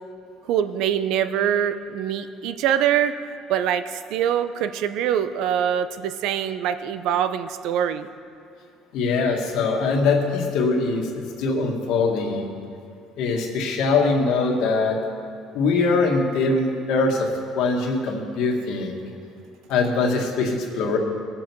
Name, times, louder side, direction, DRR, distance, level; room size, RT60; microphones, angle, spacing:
voice 1, 0.5-3.1 3.5-8.1, right 9 dB, 70° right, 11 dB, 0.6 m, -24 dB
voice 2, 8.9-12.6 13.2-15.0 15.5-17.3 17.5-18.9 19.7-21.0, left 3 dB, 75° left, 1 dB, 2.0 m, -22 dB
21.0 x 7.7 x 4.6 m, 2.4 s
cardioid pair, 140°, 0 cm